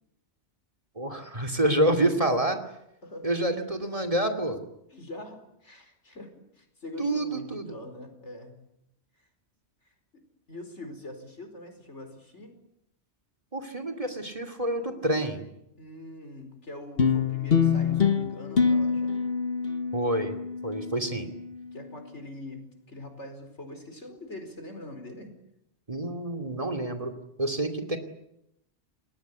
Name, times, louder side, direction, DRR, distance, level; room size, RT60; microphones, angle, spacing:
voice 1, 1.0-2.6 3.2-4.6 7.0-7.7 13.5-15.4 19.9-20.3 20.6-21.3 25.9-27.1 27.4-28.0, right 1 dB, 30° right, 5 dB, 2.6 m, -27 dB
voice 2, 4.9-8.6 9.8-9.9 10.5-12.6 15.8-19.2 21.7-25.3, left 2 dB, 85° left, 6 dB, 5.1 m, -43 dB
sound 1, 17.0-21.6, left 6 dB, 60° left, 1.5 m, -26 dB
29.5 x 20.0 x 8.5 m, 0.82 s
omnidirectional pair, 1.2 m